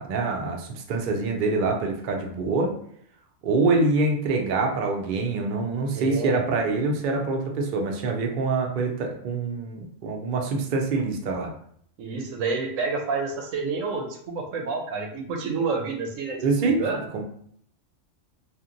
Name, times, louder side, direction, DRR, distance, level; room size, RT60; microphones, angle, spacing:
voice 1, 0.0-2.8 3.4-11.5 16.4-16.8 17.1-17.2, right 3 dB, 60° right, 2 dB, 0.5 m, -25 dB
voice 2, 5.9-6.4 12.0-17.0, right 4 dB, 90° right, 2 dB, 1.0 m, -29 dB
2.9 x 2.4 x 2.5 m, 0.64 s
omnidirectional pair, 1.3 m